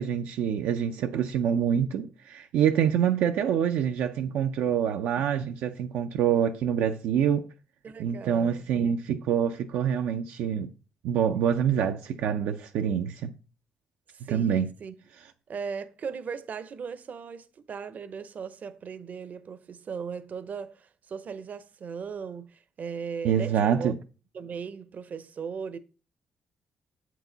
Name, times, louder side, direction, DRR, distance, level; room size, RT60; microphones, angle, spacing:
voice 1, 0.0-7.5 8.0-10.7 11.0-13.3 14.3-14.7 23.2-24.0, right 8 dB, 85° right, 0.4 m, -26 dB
voice 2, 7.8-8.7 14.1-14.9 15.5-23.9 24.3-25.8, right 6 dB, 60° right, 0.7 m, -38 dB
7.8 x 4.6 x 3.9 m
supercardioid pair, 60°, 3 cm